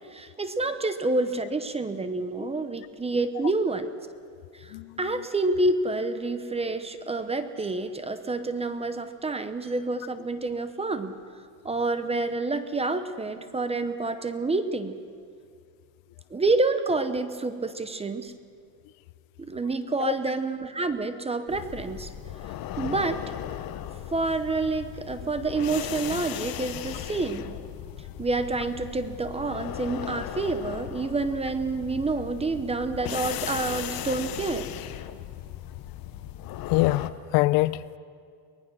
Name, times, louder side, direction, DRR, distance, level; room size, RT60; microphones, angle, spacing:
voice 1, 0.1-3.9 4.5-11.1 11.6-15.0 16.3-18.3 19.4-22.1 22.8-23.2 24.1-27.6 28.2-34.7, right 3 dB, 15° right, 10 dB, 0.7 m, -28 dB
sound 1, 21.5-37.1, left 12 dB, 45° left, 0.9 m, -37 dB
voice 2, 36.7-38.0, left 19 dB, 70° left, 18 dB, 0.7 m, -24 dB
23.5 x 19.0 x 6.2 m, 2.3 s
cardioid pair, 145°, 50 cm